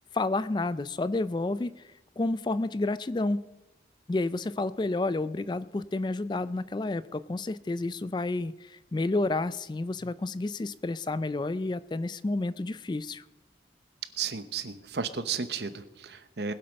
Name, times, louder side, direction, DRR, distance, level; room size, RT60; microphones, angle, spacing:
voice 1, 0.1-1.8 2.2-3.4 4.1-13.2, left 2 dB, 25° left, 16 dB, 0.3 m, -30 dB
voice 2, 14.2-16.5, right 6 dB, 70° right, 12 dB, 0.9 m, -33 dB
20.5 x 7.7 x 5.3 m, 1.0 s
head